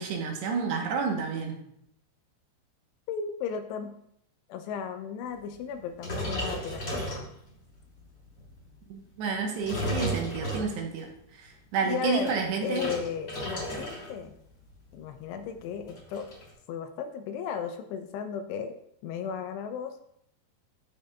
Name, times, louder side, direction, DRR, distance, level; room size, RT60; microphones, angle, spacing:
voice 1, 0.0-1.6 8.9-12.9, right 5 dB, 80° right, 1 dB, 3.0 m, -30 dB
voice 2, 3.1-3.9 4.5-7.3 11.9-12.3 12.6-14.3 14.9-16.3 16.7-18.7 19.0-20.0, left 7 dB, 85° left, 8 dB, 2.5 m, -35 dB
sound 1, 6.0-7.7 8.2-8.5 9.3-11.1 11.9-14.2 14.4-14.7 15.1-15.2 15.4-16.5, equal, 35° left, 3.0 m, -34 dB
13.0 x 4.9 x 2.3 m, 0.73 s
omnidirectional pair, 5.1 m